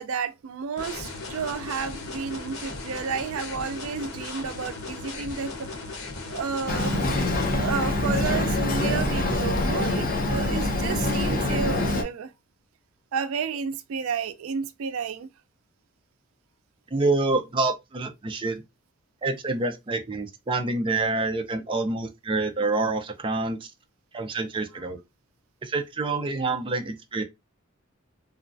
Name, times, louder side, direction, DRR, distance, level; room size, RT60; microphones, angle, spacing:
voice 1, 0.0-5.7 6.2-6.9 7.5-12.3 13.1-15.3, right 6 dB, 85° right, 0.4 m, -31 dB
sound 1, 0.8-7.6, left 3 dB, 80° left, 0.9 m, -37 dB
Boat Water vehicle, 6.7-12.0, left 1 dB, 45° left, 0.7 m, -25 dB
voice 2, 16.9-18.6 19.2-23.6 24.1-25.0 25.6-27.2, right 3 dB, 25° right, 0.5 m, -27 dB
3.0 x 2.3 x 2.5 m
head